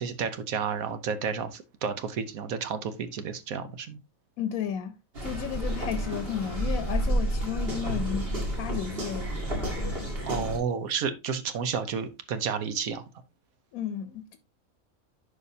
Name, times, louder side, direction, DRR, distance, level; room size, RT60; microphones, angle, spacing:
voice 1, 0.0-4.0 10.3-13.0, right 6 dB, 80° right, 1.3 m, -31 dB
voice 2, 4.4-5.0 5.2-8.3 8.6-9.3 13.7-14.4, left 9 dB, 85° left, 1.1 m, -33 dB
sound 1, 5.1-10.6, right 1 dB, 45° right, 2.2 m, -30 dB
11.0 x 5.0 x 2.7 m
omnidirectional pair, 1.5 m